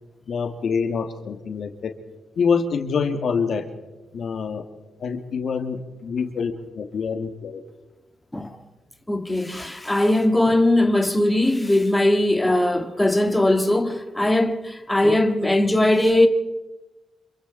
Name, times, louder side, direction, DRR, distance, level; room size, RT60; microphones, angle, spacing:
voice 1, 0.3-1.9 2.4-3.7 4.1-4.6 5.0-7.6, left 5 dB, 65° left, 2.2 m, -26 dB
voice 2, 9.1-16.3, left 1 dB, 10° left, 1.9 m, -20 dB
27.0 x 23.0 x 4.2 m
supercardioid pair, 60°, 0 cm